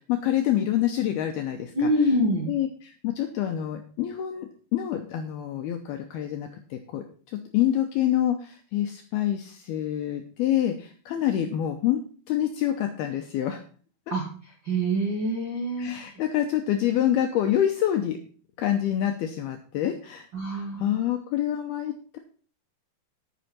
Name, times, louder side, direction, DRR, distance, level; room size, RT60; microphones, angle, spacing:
voice 1, 0.1-1.9 2.5-12.0 12.3-13.6 15.8-18.2 18.6-20.3 20.5-22.2, left 11 dB, 80° left, 5 dB, 2.3 m, -27 dB
voice 2, 1.7-2.5 14.1-14.2 14.6-15.9 20.3-21.0, equal, 45° right, -3 dB, 1.6 m, -25 dB
10.5 x 9.7 x 4.4 m, 0.42 s
omnidirectional pair, 5.4 m